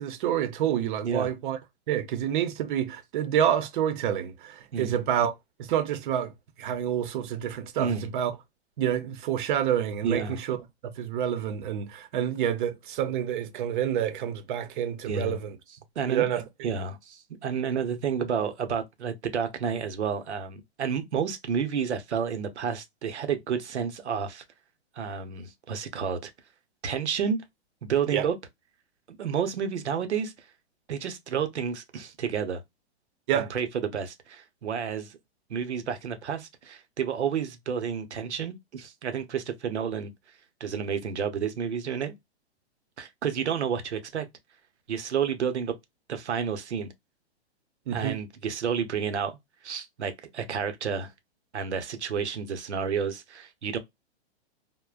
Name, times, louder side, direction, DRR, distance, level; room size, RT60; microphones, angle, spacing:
voice 1, 0.0-1.6 1.9-5.3 5.6-6.3 6.6-8.3 8.8-10.6 11.0-15.6 16.1-16.4 28.1-28.3 33.3-33.5 47.9-48.2, right 10 dB, 50° right, 0.7 m, -28 dB
voice 2, 7.8-8.1 10.0-10.4 15.0-15.4 16.0-24.4 25.0-26.3 26.8-27.4 27.8-28.4 29.2-30.3 30.9-32.6 33.3-35.2 35.5-40.1 40.6-42.1 43.0-44.3 44.9-45.7 46.1-46.9 47.9-49.4 49.6-51.1 51.5-53.8, right 7 dB, 85° right, 0.8 m, -30 dB
3.6 x 2.1 x 2.4 m
hypercardioid pair, 130°, 33 cm